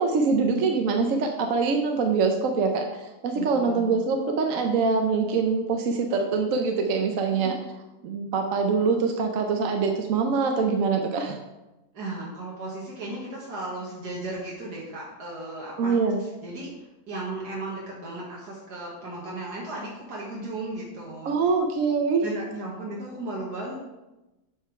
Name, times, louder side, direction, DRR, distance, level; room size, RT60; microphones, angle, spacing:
voice 1, 0.0-2.9 3.2-7.5 8.0-11.4 15.8-16.2 21.2-22.3, right 4 dB, 65° right, 4 dB, 1.0 m, -24 dB
voice 2, 3.3-4.0 11.9-16.7 17.1-21.4 22.2-23.7, right 2 dB, 90° right, -5 dB, 2.0 m, -35 dB
7.6 x 5.0 x 4.7 m, 1.0 s
omnidirectional pair, 1.7 m